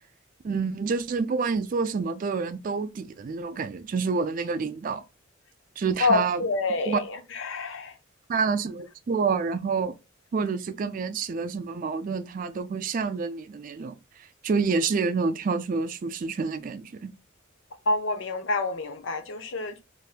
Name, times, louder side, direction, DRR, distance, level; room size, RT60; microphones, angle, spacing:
voice 1, 0.4-5.0 5.8-6.4 6.9-7.0 8.3-9.9 10.3-14.0 14.4-17.1, right 5 dB, 40° right, 0.3 m, -28 dB
voice 2, 6.0-8.0 17.9-19.8, left 3 dB, 70° left, 0.6 m, -27 dB
3.4 x 2.6 x 2.3 m
head